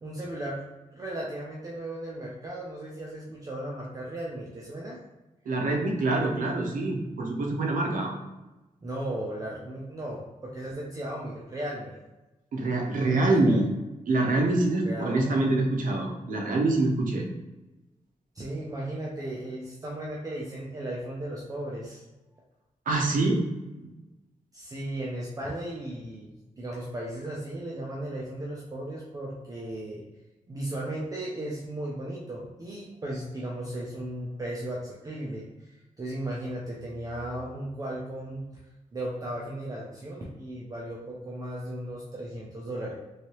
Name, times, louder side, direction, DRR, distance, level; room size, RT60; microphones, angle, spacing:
voice 1, 0.0-0.6 0.9-5.0 8.8-12.0 13.1-13.6 14.9-15.4 18.3-22.0 24.5-30.0 30.5-38.5 38.9-43.0, right 1 dB, 25° right, -4 dB, 0.4 m, -36 dB
voice 2, 5.5-8.1 12.5-13.7 14.1-17.2 22.9-23.4 23.7-23.9, right 2 dB, 75° right, 1 dB, 0.7 m, -25 dB
3.1 x 2.7 x 2.9 m, 1.1 s
wide cardioid pair, 180°, 14 cm